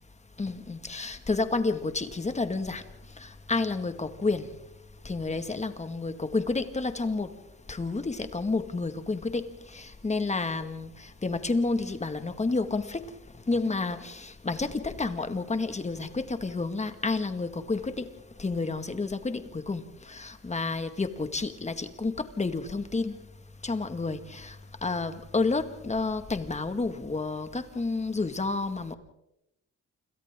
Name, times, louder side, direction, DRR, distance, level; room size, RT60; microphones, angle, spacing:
voice 1, 0.4-2.8 3.2-4.5 5.1-7.3 7.7-13.0 13.5-18.1 18.4-23.2 23.6-24.6 24.8-28.9, left 3 dB, 20° left, 9 dB, 1.9 m, -30 dB
28.5 x 27.0 x 3.7 m, 0.84 s
cardioid pair, 115°, 30 cm